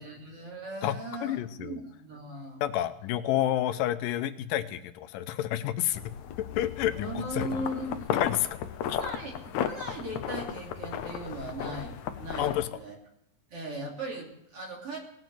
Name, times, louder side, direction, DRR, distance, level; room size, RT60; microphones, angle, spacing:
voice 1, 0.0-2.6 7.0-8.1 9.0-13.0 13.5-15.0, right 1 dB, 45° right, -1 dB, 3.8 m, -38 dB
voice 2, 0.8-1.8 2.6-6.1 6.6-7.6 8.1-8.6 8.9-9.0 12.4-12.7, left 12 dB, 90° left, 11 dB, 2.4 m, -30 dB
sound 1, 5.9-12.7, left 9 dB, 70° left, 1.9 m, -35 dB
18.0 x 7.3 x 7.8 m, 0.79 s
omnidirectional pair, 3.9 m